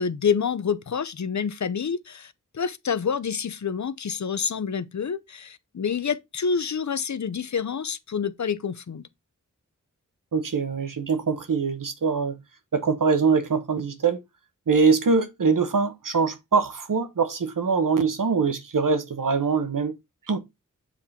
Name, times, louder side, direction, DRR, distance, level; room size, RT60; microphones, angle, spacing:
voice 1, 0.0-9.0, left 6 dB, 60° left, 0.6 m, -28 dB
voice 2, 10.3-12.4 12.7-14.2 14.7-19.9 20.3-20.4, right 5 dB, 80° right, 1.2 m, -23 dB
7.5 x 3.7 x 4.2 m
wide cardioid pair, 65°, 32 cm